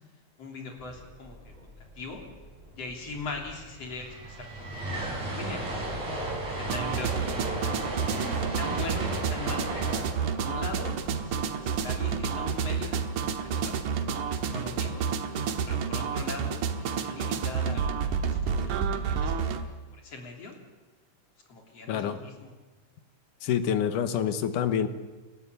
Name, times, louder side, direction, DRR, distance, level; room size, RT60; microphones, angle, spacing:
voice 1, 0.4-2.2 2.7-5.0 5.3-5.8 6.5-7.8 8.6-9.9 10.4-13.8 14.3-15.0 15.7-19.6 19.9-20.6 21.5-22.5, left 3 dB, 45° left, 2 dB, 4.2 m, -41 dB
sound 1, 0.8-14.4, equal, 10° right, 3.3 m, -51 dB
sound 2, 3.6-11.9, right 1 dB, 55° right, 7.7 m, -35 dB
sound 3, 6.7-19.6, right 6 dB, 70° right, 2.7 m, -30 dB
voice 2, 21.9-22.2 23.4-24.9, left 8 dB, 75° left, 10 dB, 2.6 m, -27 dB
30.0 x 14.0 x 8.4 m, 1.3 s
omnidirectional pair, 3.9 m